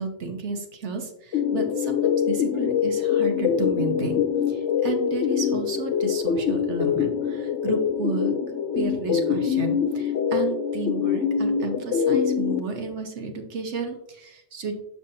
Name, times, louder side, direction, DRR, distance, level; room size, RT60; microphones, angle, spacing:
voice 1, 0.0-4.2 4.5-8.3 8.7-14.7, right 4 dB, 75° right, 5 dB, 1.3 m, -32 dB
sound 1, 1.3-12.6, left 7 dB, 85° left, 1.0 m, -24 dB
6.7 x 5.9 x 2.8 m, 0.78 s
omnidirectional pair, 1.2 m